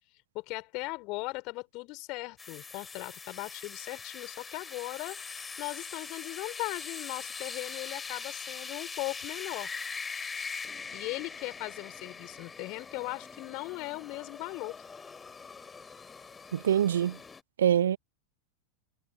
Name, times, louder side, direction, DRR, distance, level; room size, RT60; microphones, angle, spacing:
voice 1, 0.3-9.7 10.9-14.8, left 25 dB, 40° left, 5.7 m, -38 dB
sound 1, 2.4-17.4, left 5 dB, 15° left, 4.6 m, -42 dB
voice 2, 16.5-17.2 17.6-18.0, right 10 dB, 65° right, 0.8 m, -24 dB
figure-of-eight pair, 90°, 0 cm